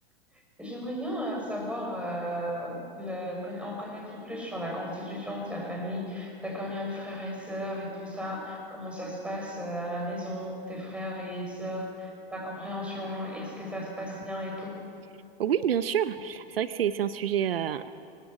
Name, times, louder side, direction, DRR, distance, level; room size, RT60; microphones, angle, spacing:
voice 1, 0.6-14.8, equal, 5° right, -1 dB, 6.2 m, -35 dB
voice 2, 15.4-17.9, right 9 dB, 80° right, 13 dB, 0.8 m, -28 dB
24.5 x 20.5 x 6.2 m, 2.7 s
hypercardioid pair, 110°, 29 cm